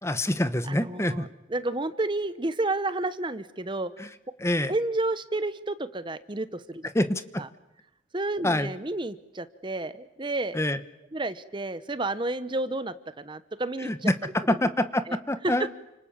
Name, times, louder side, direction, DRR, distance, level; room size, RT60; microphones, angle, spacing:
voice 1, 0.0-1.3 4.0-4.1 4.4-4.7 6.9-7.4 8.4-8.7 10.5-10.8 13.8-15.7, left 1 dB, 15° left, 12 dB, 1.1 m, -26 dB
voice 2, 0.6-4.1 4.7-6.9 7.4-7.5 8.1-10.6 11.1-14.1 15.1-15.2 15.4-15.5, right 2 dB, 25° right, 13 dB, 0.9 m, -31 dB
30.0 x 27.0 x 7.4 m, 0.93 s
head